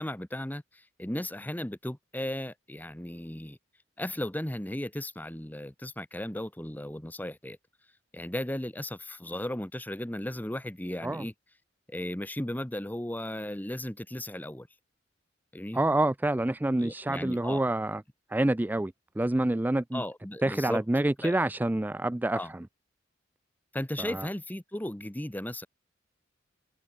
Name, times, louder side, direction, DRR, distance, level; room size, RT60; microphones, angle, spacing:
voice 1, 0.0-3.6 4.0-7.6 8.1-11.3 11.9-14.7 15.5-15.8 16.8-17.6 19.9-20.8 21.2-21.4 22.3-22.5 23.7-25.7, left 1 dB, 10° left, 1.1 m, -36 dB
voice 2, 15.7-18.0 18.3-20.0 20.4-22.7 24.0-24.3, right 1 dB, 10° right, 0.3 m, -27 dB
open air
head